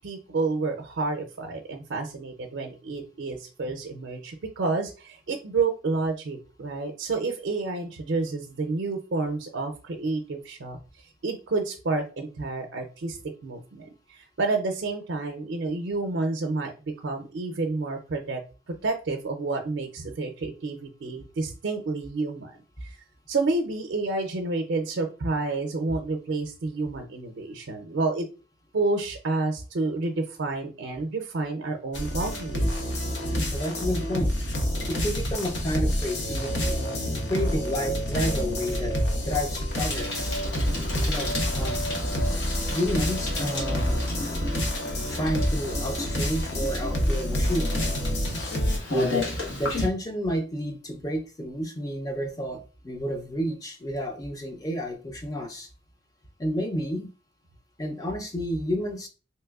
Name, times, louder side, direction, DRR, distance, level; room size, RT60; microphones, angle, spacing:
voice 1, 0.0-10.8 11.2-18.4 18.8-23.0 23.3-28.3 28.7-32.8, right 3 dB, 80° right, 3 dB, 0.5 m, -29 dB
sound 1, 31.9-48.8, equal, 70° left, 0.7 m, -28 dB
voice 2, 33.5-34.3 34.9-36.8 37.3-40.4 41.0-41.8 42.7-44.0 45.1-47.8 48.9-55.7 56.4-57.1 57.8-59.1, equal, 20° left, 4 dB, 0.4 m, -31 dB
Bicycle, 39.8-49.9, left 1 dB, 85° left, 1.1 m, -34 dB
3.2 x 2.9 x 2.3 m, 0.33 s
head